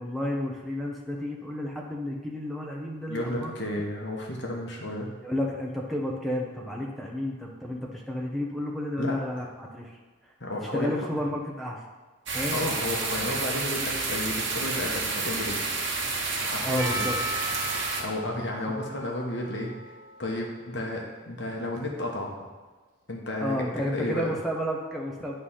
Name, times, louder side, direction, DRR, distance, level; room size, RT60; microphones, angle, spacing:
voice 1, 0.0-3.5 5.2-10.3 10.6-11.8 12.3-12.6 16.6-17.2 18.7-18.8 23.4-25.3, left 1 dB, ahead, -2 dB, 0.9 m, -31 dB
voice 2, 3.1-5.1 9.0-9.5 10.4-11.0 12.5-15.6 16.4-17.1 17.7-19.7 20.2-22.5 23.1-24.3, left 1 dB, 60° left, 0 dB, 1.2 m, -32 dB
sound 1, 12.3-18.0, right 3 dB, 65° right, 1.2 m, -30 dB
Percussion, 16.8-21.1, equal, 40° left, 1.4 m, -38 dB
9.5 x 3.4 x 5.7 m, 1.3 s
head